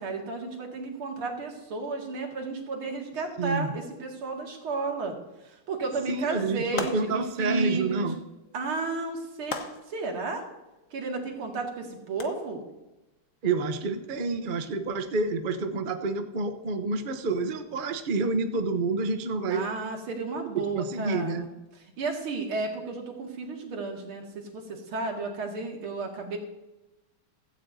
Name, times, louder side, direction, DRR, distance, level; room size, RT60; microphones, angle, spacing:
voice 1, 0.0-5.2 5.7-8.1 8.5-9.6 9.9-10.4 10.9-12.6 19.5-21.5 22.0-26.4, right 4 dB, 85° right, 1 dB, 2.9 m, -33 dB
voice 2, 3.4-3.7 6.1-8.2 13.4-19.6 20.7-21.5, right 3 dB, 55° right, 8 dB, 0.5 m, -28 dB
sound 1, 6.8-7.4 9.5-10.1 12.2-12.3, left 4 dB, 45° left, 1.4 m, -35 dB
16.5 x 13.5 x 2.7 m, 1.0 s
omnidirectional pair, 2.3 m